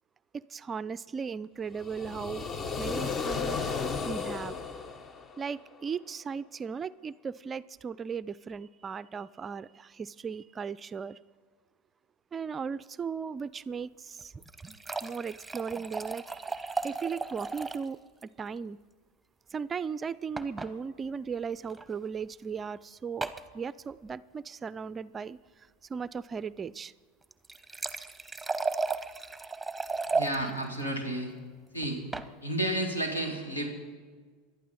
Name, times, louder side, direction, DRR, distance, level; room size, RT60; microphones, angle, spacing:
voice 1, 0.3-2.4 2.8-3.6 4.1-4.6 5.4-11.2 12.3-14.3 15.0-18.8 19.5-25.4 25.9-26.9, right 6 dB, 25° right, 0.4 m, -37 dB
sound 1, 1.7-5.8, left 5 dB, 30° left, 1.0 m, -34 dB
sound 2, 14.2-17.9 18.2-18.3 18.6-18.7 20.4-20.7 21.7-21.9 23.2-23.5 27.2-30.4 31.8-32.3, right 3 dB, 5° right, 0.9 m, -34 dB
voice 2, 30.1-31.3 31.7-32.0 32.4-33.7, right 1 dB, 85° left, 2.8 m, -31 dB
27.0 x 11.5 x 4.2 m
figure-of-eight pair, 80°, 0 cm